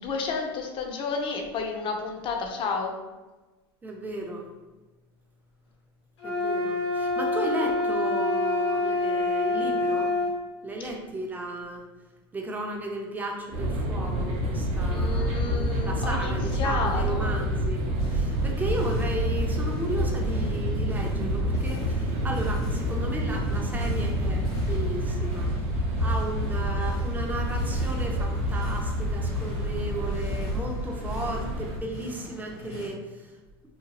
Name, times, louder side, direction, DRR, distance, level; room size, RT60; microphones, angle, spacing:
voice 1, 0.0-2.9 14.8-17.4, left 4 dB, 40° left, 3 dB, 0.5 m, -31 dB
voice 2, 3.8-4.5 6.2-10.2 10.6-11.8 12.3-15.5 15.8-17.8 18.1-25.5 26.0-33.3, right 1 dB, 10° right, 1 dB, 0.5 m, -34 dB
sound 1, 6.2-10.3, left 2 dB, 90° left, 1.0 m, -26 dB
Embankment walking across Waterloo Bridge, 13.5-31.8, equal, 50° right, 0.6 m, -28 dB
sound 2, 18.0-32.9, left 1 dB, 70° left, 0.9 m, -42 dB
2.9 x 2.2 x 2.8 m, 1.2 s
hypercardioid pair, 100°, 14 cm